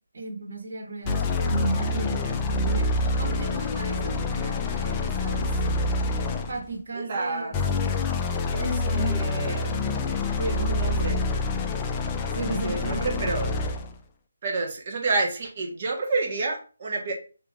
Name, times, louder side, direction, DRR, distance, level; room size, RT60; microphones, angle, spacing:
voice 1, 0.1-5.6 6.5-7.8 8.5-9.2 10.4-11.2 12.3-13.3, right 3 dB, 65° right, 2 dB, 1.6 m, -34 dB
sound 1, 1.0-6.7 7.5-13.9, left 3 dB, 15° left, 0.4 m, -27 dB
voice 2, 6.9-7.6 8.9-9.9 10.3-11.3 12.5-13.5 14.4-17.1, right 3 dB, 40° right, 1 dB, 1.2 m, -29 dB
3.7 x 2.9 x 3.7 m, 0.36 s
figure-of-eight pair, 165°, 0 cm